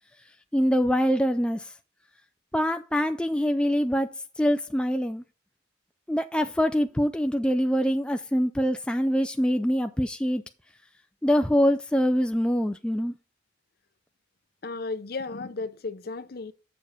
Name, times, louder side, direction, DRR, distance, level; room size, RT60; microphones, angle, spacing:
voice 1, 0.5-1.7 2.5-5.2 6.1-10.4 11.2-13.1, equal, 5° left, 0.3 m, -24 dB
voice 2, 14.6-16.5, left 3 dB, 50° left, 0.6 m, -34 dB
7.1 x 6.9 x 4.9 m
head